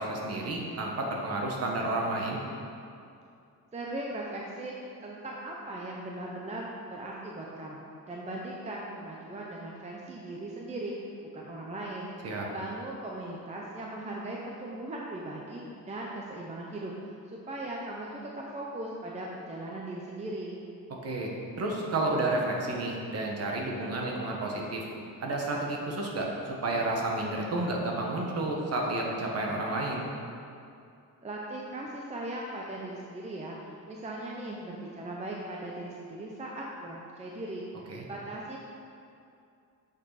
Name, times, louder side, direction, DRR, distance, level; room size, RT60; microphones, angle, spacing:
voice 1, 0.0-2.4 12.2-12.5 21.0-21.3 21.6-24.8 25.2-30.1 37.9-38.1, right 2 dB, 45° right, -1 dB, 1.3 m, -31 dB
voice 2, 3.7-11.1 11.3-12.1 12.5-15.6 15.9-16.9 17.3-20.6 31.2-38.6, right 1 dB, 20° right, -3 dB, 0.6 m, -39 dB
8.9 x 6.7 x 4.0 m, 2.5 s
cardioid pair, 170°, 35 cm